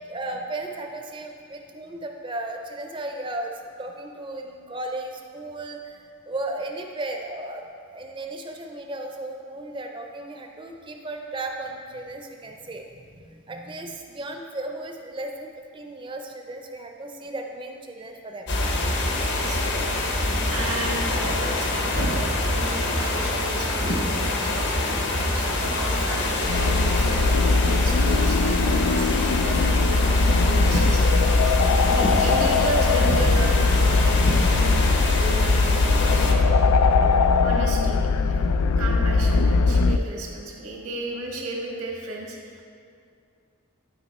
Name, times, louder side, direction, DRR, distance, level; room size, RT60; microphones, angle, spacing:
voice 1, 0.0-3.5 3.8-6.0 6.3-7.6 7.9-18.5 25.0-25.4, right 2 dB, 25° right, 3 dB, 0.5 m, -35 dB
sound 1, 18.5-36.3, left 2 dB, 55° left, 0.9 m, -25 dB
voice 2, 19.4-24.9 25.2-30.0 30.4-31.5 31.9-34.2 34.5-36.7 37.4-38.4 38.8-42.6, right 2 dB, 85° right, -2 dB, 1.5 m, -34 dB
Telephone, 23.0-23.2 23.7-24.0 24.4-24.7 25.1-25.4 25.8-26.1 26.6-26.8 27.3-27.5 28.0-28.3 28.7-29.0, right 3 dB, 70° right, 0.8 m, -43 dB
sound 2, 26.5-40.0, left 3 dB, 90° left, 0.3 m, -20 dB
11.5 x 4.8 x 4.2 m, 2.3 s
head